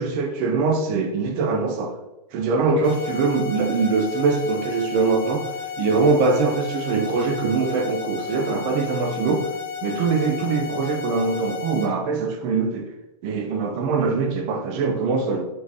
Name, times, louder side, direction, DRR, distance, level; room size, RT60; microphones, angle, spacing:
voice 1, 0.0-2.0 2.3-9.5 9.8-12.9 13.2-15.4, right 4 dB, 20° right, 0.4 m, -23 dB
sound 1, 2.8-11.8, left 8 dB, 35° left, 1.0 m, -33 dB
5.1 x 3.8 x 2.6 m
supercardioid pair, 170°, 20 cm